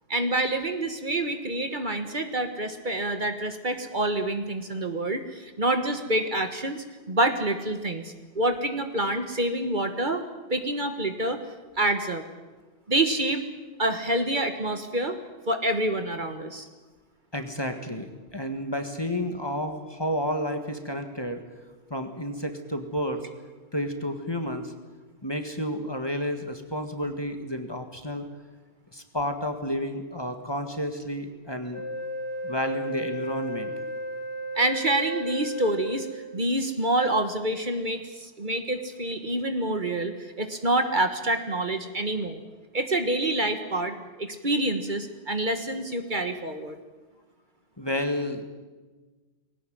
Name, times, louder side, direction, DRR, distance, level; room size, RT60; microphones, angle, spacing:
voice 1, 0.1-10.2 10.5-11.4 11.8-12.2 12.9-13.4 13.8-15.2 15.5-16.7 34.5-42.4 42.7-46.8, right 1 dB, 45° right, 7 dB, 1.6 m, -27 dB
voice 2, 17.3-21.4 21.9-23.3 23.7-24.7 25.2-28.3 28.9-31.8 32.4-33.8 47.8-48.5, equal, 20° left, 6 dB, 1.8 m, -31 dB
Wind instrument woodwind instrument, 31.7-36.5, equal, 80° left, 2.5 m, -34 dB
20.5 x 18.0 x 9.4 m, 1.3 s
omnidirectional pair, 1.2 m